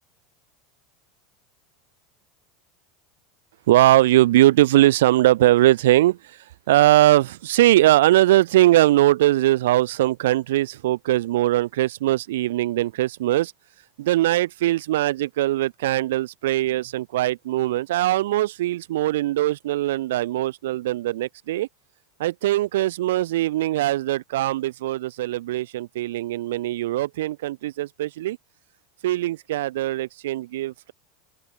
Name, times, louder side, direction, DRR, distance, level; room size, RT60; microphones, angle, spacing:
voice 1, 3.7-13.5 14.0-21.7 22.2-28.4 29.0-30.9, right 15 dB, 90° right, 1.3 m, -20 dB
open air
supercardioid pair, 145°, 0 cm